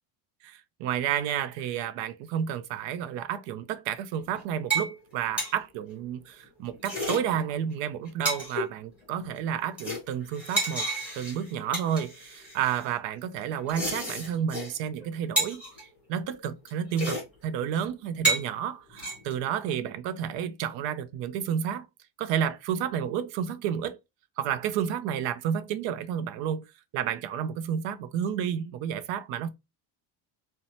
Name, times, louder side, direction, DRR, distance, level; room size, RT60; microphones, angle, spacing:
voice 1, 0.4-10.9 11.1-15.6 16.1-21.9 22.2-24.0 24.4-26.6 26.9-29.5, right 9 dB, 75° right, 0.5 m, -31 dB
sound 1, 4.1-4.4 4.7-4.9 5.2-5.5 6.6-7.2 7.7-7.8 8.1-8.7 9.2-9.5 9.8-12.8 13.5-14.7 15.0-15.1 15.4-15.8 16.7-16.8 17.0-17.2 17.5-17.6 18.1-18.5 18.9-19.4, right 2 dB, 5° right, 0.9 m, -31 dB
2.6 x 2.1 x 2.8 m
cardioid pair, 170°, 46 cm